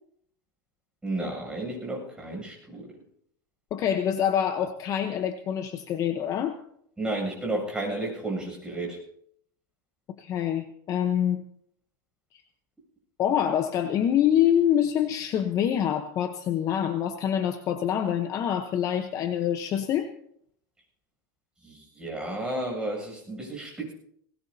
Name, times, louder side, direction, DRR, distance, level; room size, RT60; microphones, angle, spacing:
voice 1, 1.0-3.0 7.0-9.0 21.6-23.9, right 2 dB, 10° right, -2 dB, 7.7 m, -32 dB
voice 2, 3.7-6.6 10.2-11.4 13.2-20.1, left 9 dB, 30° left, 7 dB, 1.0 m, -25 dB
21.5 x 19.0 x 2.8 m, 0.69 s
supercardioid pair, 150°, 11 cm